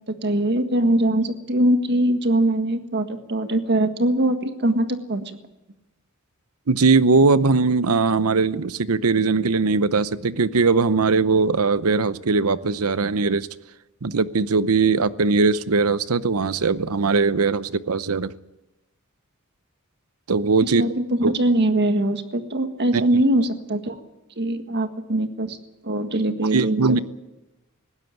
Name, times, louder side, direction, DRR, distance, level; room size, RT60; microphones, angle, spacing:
voice 1, 0.1-5.4 20.6-23.9 24.4-25.6 25.8-27.0, right 1 dB, 50° right, 7 dB, 1.7 m, -22 dB
voice 2, 6.7-13.5 14.0-18.3 20.3-20.8 21.2-21.3 22.9-23.0 26.5-27.0, right 4 dB, 80° right, 15 dB, 0.8 m, -20 dB
19.5 x 16.5 x 9.3 m, 0.99 s
head